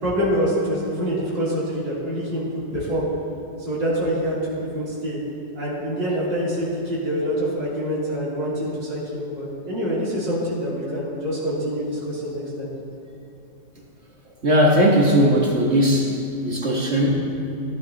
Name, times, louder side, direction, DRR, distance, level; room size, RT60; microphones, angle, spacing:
voice 1, 0.0-3.1 3.6-5.2 5.5-12.7, equal, 90° right, -9 dB, 4.3 m, -26 dB
voice 2, 14.4-16.1 16.4-17.2, equal, 40° right, -3 dB, 1.7 m, -18 dB
18.0 x 11.5 x 3.0 m, 2.6 s
omnidirectional pair, 1.9 m